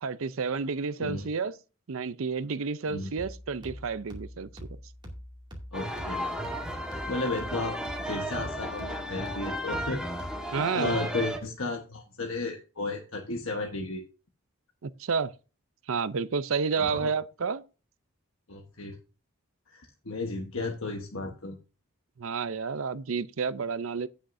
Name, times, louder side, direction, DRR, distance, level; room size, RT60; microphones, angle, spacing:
voice 1, 0.0-1.5 1.9-4.5 10.5-11.0 14.8-15.3 15.9-17.6 22.2-24.1, right 5 dB, 70° right, 0.5 m, -30 dB
sound 1, 3.2-10.7, equal, 20° right, 2.4 m, -44 dB
voice 2, 5.7-6.3 7.1-7.8 8.0-10.0 10.4-14.0 16.8-17.1 18.5-19.0 19.7-21.6, left 2 dB, 65° left, 1.3 m, -34 dB
sound 2, 5.7-11.4, equal, 5° right, 1.5 m, -34 dB
17.0 x 6.5 x 2.7 m
head